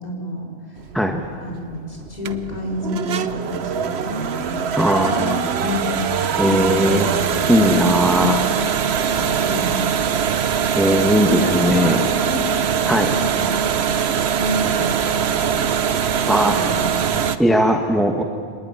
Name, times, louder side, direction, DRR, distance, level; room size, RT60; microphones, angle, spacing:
voice 1, 0.0-0.8 1.4-5.9 6.3-7.1 7.5-9.7 11.1-13.5 14.4-15.6 16.5-17.2, left 1 dB, 40° left, -2 dB, 4.9 m, -29 dB
sound 1, 0.8-17.4, right 7 dB, 85° right, 1.1 m, -22 dB
voice 2, 4.8-5.5 6.4-7.1 7.5-8.4 10.8-12.0 12.9-13.1 16.3-16.5 17.4-18.2, equal, ahead, 3 dB, 1.3 m, -18 dB
25.5 x 19.5 x 10.0 m, 2.1 s
omnidirectional pair, 1.1 m